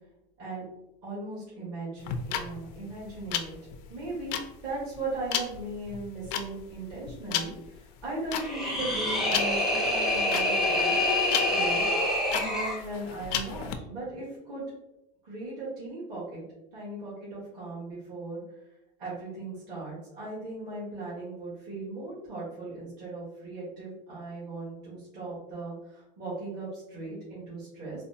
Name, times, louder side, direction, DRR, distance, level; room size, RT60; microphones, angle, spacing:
voice 1, 1.0-3.5 3.9-10.9 11.5-11.8 12.3-14.6 15.2-16.4 16.7-18.4 19.0-28.0, right 2 dB, 50° right, -9 dB, 1.5 m, -38 dB
sound 1, 2.0-13.8, left 9 dB, 70° left, 0.4 m, -34 dB
sound 2, 8.3-12.8, left 1 dB, ahead, 0.5 m, -26 dB
4.1 x 2.0 x 2.7 m, 0.91 s
cardioid pair, 155°, 21 cm